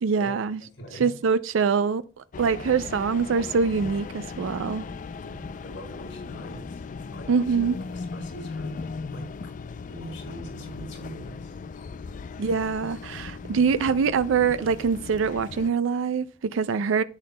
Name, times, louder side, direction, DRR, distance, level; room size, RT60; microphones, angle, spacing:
voice 1, 0.0-0.6 1.0-2.0 2.4-4.8 7.3-7.8 12.4-17.0, right 5 dB, 85° right, 0.4 m, -24 dB
voice 2, 0.8-1.1 5.2-8.8 9.1-9.5 9.9-11.8, equal, 75° left, 4.3 m, -43 dB
sound 1, 2.3-15.7, left 4 dB, 40° left, 0.3 m, -38 dB
11.5 x 8.4 x 2.2 m
head